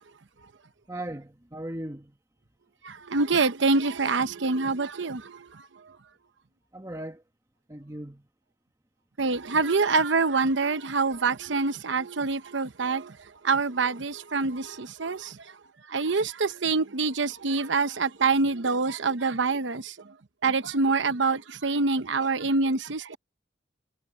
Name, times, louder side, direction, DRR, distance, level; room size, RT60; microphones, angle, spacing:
voice 1, 0.9-2.1 6.7-7.2 7.7-8.2, right 1 dB, 20° right, 1.5 m, -37 dB
voice 2, 2.8-5.6 9.2-13.2 13.4-15.4 15.9-19.9 20.4-23.2, right 4 dB, 80° right, 0.9 m, -26 dB
head